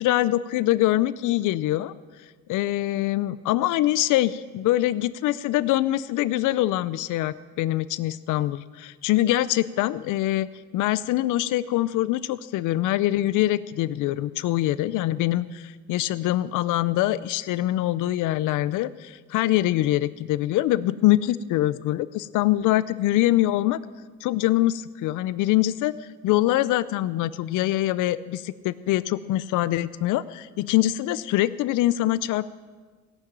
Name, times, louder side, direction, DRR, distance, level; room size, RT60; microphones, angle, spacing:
voice 1, 0.0-1.9 2.5-10.5 10.7-23.8 24.2-25.9 26.2-32.5, left 15 dB, 85° left, 16 dB, 0.5 m, -24 dB
16.5 x 6.1 x 8.7 m, 1.4 s
cardioid pair, 90°, 30 cm